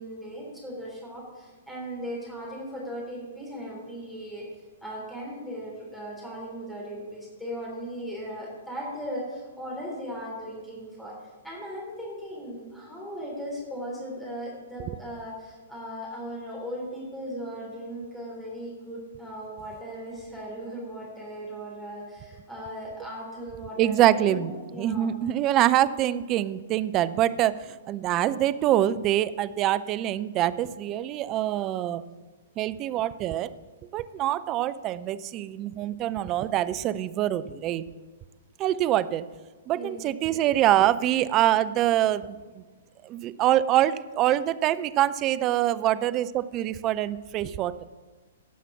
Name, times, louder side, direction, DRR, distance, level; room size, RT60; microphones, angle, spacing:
voice 1, 0.0-4.5 4.8-25.1 39.7-40.0, equal, 5° left, -5 dB, 3.4 m, -38 dB
voice 2, 23.8-32.0 32.6-33.5 33.9-37.8 38.6-39.3 39.7-42.4 43.0-47.8, right 13 dB, 25° right, 14 dB, 0.5 m, -25 dB
17.0 x 5.8 x 6.0 m, 1.3 s
figure-of-eight pair, 115°, 0 cm